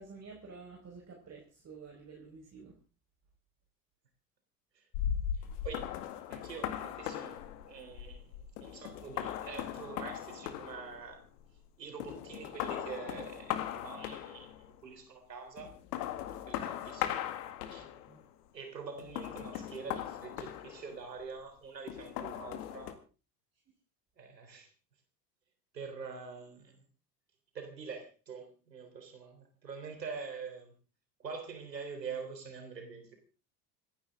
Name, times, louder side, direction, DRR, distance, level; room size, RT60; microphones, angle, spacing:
voice 1, 0.0-2.8 18.0-18.2, right 4 dB, 30° right, 0 dB, 4.9 m, -50 dB
sound 1, 4.9-11.7 12.0-14.7 15.6-18.2 19.0-21.2 21.9-22.9, left 11 dB, 70° left, 2.2 m, -39 dB
voice 2, 5.3-6.0 6.3-11.2 11.8-15.7 16.5-17.3 17.7-17.9 18.5-23.0 24.2-24.7 25.7-26.8 27.5-30.7 31.2-33.1, right 5 dB, 90° right, 5 dB, 3.7 m, -45 dB
27.5 x 11.5 x 3.7 m, 0.35 s
hypercardioid pair, 70°, 48 cm